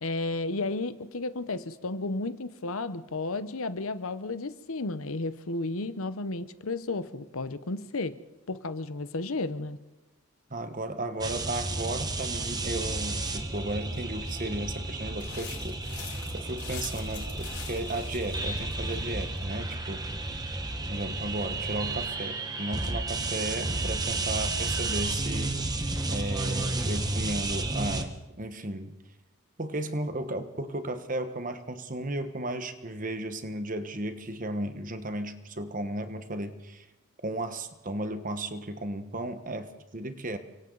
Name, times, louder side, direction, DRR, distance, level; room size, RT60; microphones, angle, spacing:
voice 1, 0.0-8.2 8.5-9.8, left 2 dB, 65° left, 12 dB, 0.9 m, -33 dB
voice 2, 10.5-15.8 16.3-20.1 20.8-25.8 26.1-28.9 29.6-36.9 37.2-40.4, right 1 dB, 35° right, 8 dB, 1.3 m, -35 dB
sound 1, 11.2-28.0, right 2 dB, 15° right, 1.2 m, -32 dB
sound 2, 15.2-19.3, left 7 dB, 80° left, 5.6 m, -44 dB
29.0 x 24.5 x 4.0 m, 1.1 s
head